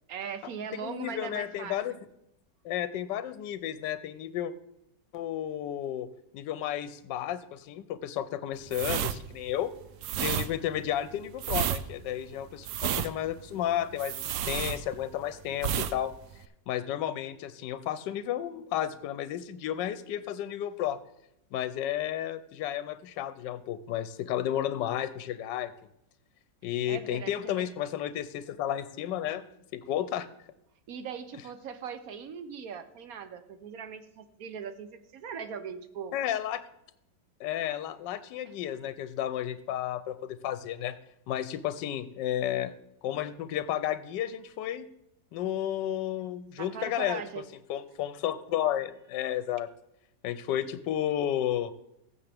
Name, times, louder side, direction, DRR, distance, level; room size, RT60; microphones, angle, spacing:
voice 1, 0.1-2.0 26.9-27.7 30.9-36.2 46.6-47.4, right 7 dB, 65° right, 11 dB, 1.0 m, -40 dB
voice 2, 0.7-2.0 2.6-4.5 5.1-6.1 6.3-9.7 10.2-21.0 21.5-25.7 26.6-29.5 29.7-30.3 36.1-36.6 37.4-41.0 41.3-42.7 43.0-44.9 45.3-47.2 47.7-49.7 50.2-51.7, left 11 dB, 80° left, 14 dB, 1.2 m, -32 dB
sound 1, 8.7-15.2 15.6-16.0 16.2-16.4, right 10 dB, 85° right, 0.6 m, -31 dB
15.0 x 7.4 x 3.4 m, 0.82 s
omnidirectional pair, 1.9 m